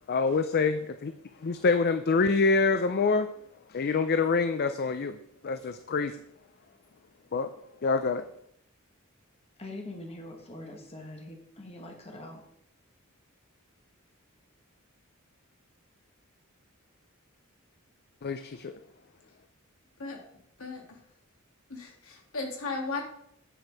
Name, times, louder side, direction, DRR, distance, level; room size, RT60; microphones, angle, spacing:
voice 1, 0.1-1.1 1.4-3.3 3.7-5.2 5.4-6.1 7.3-7.5 7.8-8.2 18.2-18.8, left 4 dB, 50° left, 9 dB, 0.5 m, -26 dB
voice 2, 9.6-12.4, left 1 dB, 30° left, 2 dB, 1.5 m, -43 dB
voice 3, 21.7-23.0, left 3 dB, 75° left, 1 dB, 2.3 m, -35 dB
9.1 x 6.2 x 4.8 m, 0.72 s
head